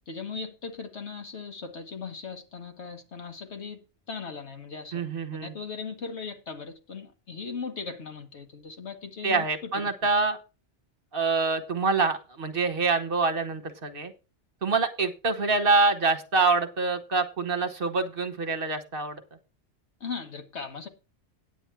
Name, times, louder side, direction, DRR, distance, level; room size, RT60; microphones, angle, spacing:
voice 1, 0.1-5.0 5.5-9.7 20.0-20.9, left 5 dB, 70° left, 1.7 m, -38 dB
voice 2, 4.9-5.5 9.2-10.4 11.1-14.1 14.6-19.2, right 3 dB, 50° right, 1.3 m, -26 dB
9.2 x 8.9 x 4.5 m
omnidirectional pair, 1.2 m